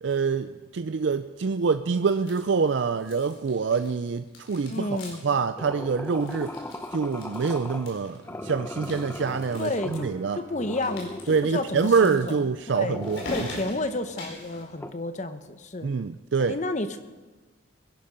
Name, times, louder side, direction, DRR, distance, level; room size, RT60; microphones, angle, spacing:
voice 1, 0.0-5.0 5.2-6.5 6.9-10.4 11.3-13.2 15.8-16.6, right 5 dB, 60° right, 10 dB, 0.4 m, -25 dB
Pulling object (cord-cable) from a cardboard box, 2.0-2.7 3.0-4.0 4.3-5.4 5.7-5.8 6.0-8.2 8.7-10.0 10.7-14.6, left 2 dB, 70° left, 4.4 m, -43 dB
voice 2, 4.7-5.2 9.5-10.1 10.3-13.0 13.3-15.9 16.4-17.0, left 2 dB, 35° left, 10 dB, 0.9 m, -31 dB
sound 1, 5.6-7.9 8.2-10.2 10.6-11.7 12.0-14.9, left 1 dB, 10° left, 0.7 m, -39 dB
Bowed string instrument, 7.7-13.0, equal, 35° right, 1.5 m, -50 dB
22.0 x 11.0 x 5.2 m, 1.3 s
head